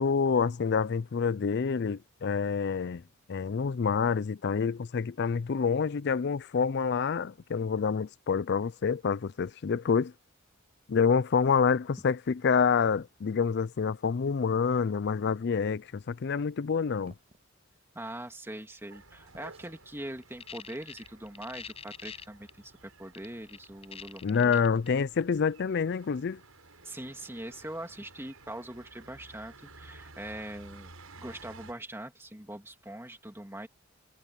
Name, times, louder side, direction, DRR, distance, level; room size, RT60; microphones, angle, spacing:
voice 1, 0.0-3.0 3.3-10.1 10.9-17.1 24.2-26.4, left 6 dB, 55° left, 0.4 m, -27 dB
sound 1, 17.0-17.5 19.3-19.8, right 1 dB, 30° right, 5.2 m, -56 dB
voice 2, 17.9-24.5 26.8-30.9 31.2-33.7, right 1 dB, 10° right, 2.4 m, -42 dB
sound 2, 18.9-31.7, right 3 dB, 85° right, 7.5 m, -54 dB
sound 3, 20.2-22.5 23.1-24.9, left 6 dB, 30° left, 6.0 m, -44 dB
head